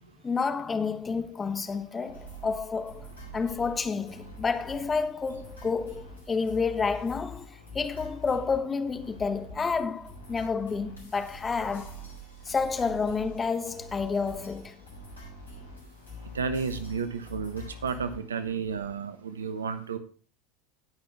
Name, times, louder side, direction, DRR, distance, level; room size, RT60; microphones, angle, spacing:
voice 1, 0.2-3.1 3.3-12.0 12.4-14.8, left 5 dB, 20° left, 1.3 m, -30 dB
sound 1, 2.1-18.4, left 1 dB, 85° left, 4.0 m, -45 dB
voice 2, 16.3-20.0, right 5 dB, 80° right, 1.0 m, -32 dB
17.5 x 5.9 x 3.3 m
figure-of-eight pair, 80°, 0 cm